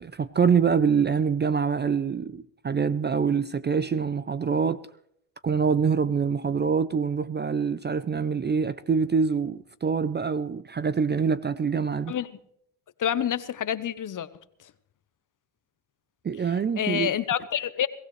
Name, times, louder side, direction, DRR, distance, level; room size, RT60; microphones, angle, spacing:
voice 1, 0.0-4.8 5.4-12.1 16.2-17.1, right 6 dB, 25° right, 0.5 m, -25 dB
voice 2, 13.0-14.3 14.6-14.7 16.4-17.9, left 10 dB, 45° left, 0.9 m, -28 dB
22.5 x 15.5 x 3.2 m
supercardioid pair, 70°, 44 cm